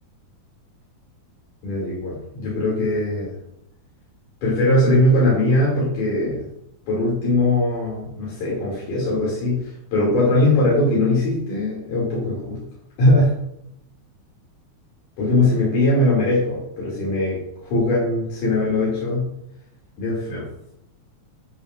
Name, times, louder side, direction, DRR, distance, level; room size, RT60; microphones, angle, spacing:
voice 1, 1.6-3.3 4.4-6.4 6.9-12.6 13.0-13.4 15.2-19.3 20.0-20.5, left 1 dB, 90° left, -7 dB, 4.3 m, -20 dB
13.0 x 6.3 x 2.6 m, 0.76 s
omnidirectional pair, 3.5 m